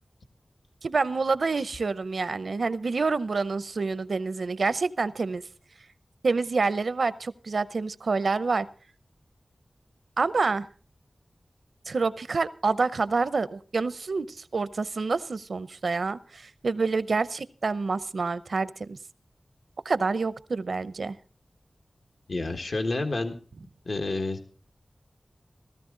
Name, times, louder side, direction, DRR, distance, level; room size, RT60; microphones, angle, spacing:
voice 1, 0.8-5.4 6.2-8.7 10.2-10.7 11.9-19.0 19.8-21.2, right 4 dB, 85° right, 16 dB, 0.7 m, -27 dB
voice 2, 22.3-23.3 23.8-24.5, left 2 dB, 75° left, 6 dB, 1.5 m, -29 dB
16.5 x 13.5 x 3.8 m, 0.39 s
wide cardioid pair, 75°, 0 cm